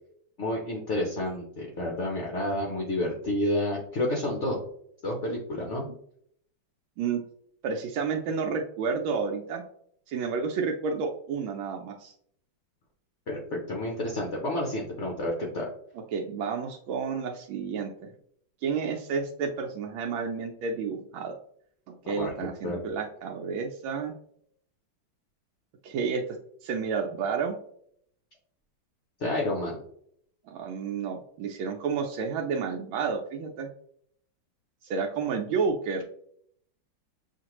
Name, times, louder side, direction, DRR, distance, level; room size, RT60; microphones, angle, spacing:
voice 1, 0.4-4.6 5.0-5.9 13.3-15.7 22.0-22.8 29.2-29.8, left 1 dB, 70° left, -1 dB, 0.6 m, -30 dB
voice 2, 7.6-9.6 10.1-12.1 16.1-18.1 18.6-21.4 21.9-24.1 25.8-26.2 26.6-27.6 30.5-33.7 34.8-36.0, right 5 dB, 85° right, 2 dB, 1.4 m, -30 dB
6.3 x 2.5 x 2.9 m, 0.66 s
omnidirectional pair, 2.2 m